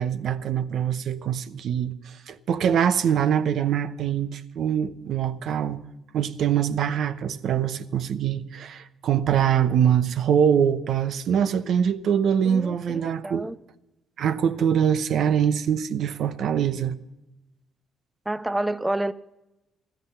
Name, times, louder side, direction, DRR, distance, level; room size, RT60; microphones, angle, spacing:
voice 1, 0.0-5.8 6.1-13.5 14.2-17.0, right 8 dB, 70° right, 0.8 m, -24 dB
voice 2, 12.4-13.6 18.3-19.1, right 1 dB, 10° right, 0.4 m, -29 dB
15.0 x 13.5 x 5.7 m
cardioid pair, 90°, 0 cm